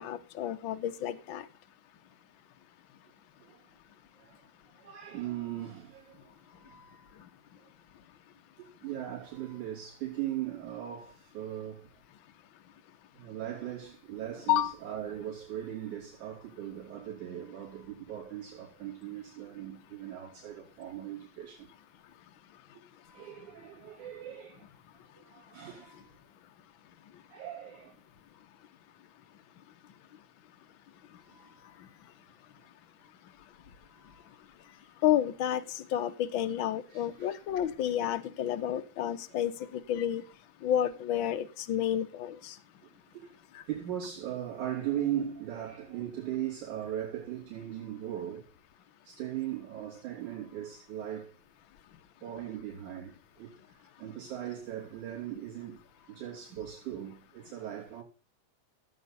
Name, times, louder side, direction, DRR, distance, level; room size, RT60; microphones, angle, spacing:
voice 1, 0.0-1.5 14.5-14.7 35.0-40.2 40.6-42.6 43.5-43.6, left 11 dB, 55° left, 1.4 m, -30 dB
voice 2, 4.7-7.3 8.6-11.9 13.1-21.7 23.0-24.7 25.1-26.1 27.3-28.0 31.2-31.7 33.9-34.4 36.9-37.4 39.3-39.4 43.1-43.4 43.7-48.4 49.0-51.3 52.2-53.5 54.0-58.0, right 11 dB, 75° right, 4.6 m, -39 dB
16.0 x 8.3 x 4.2 m
omnidirectional pair, 3.5 m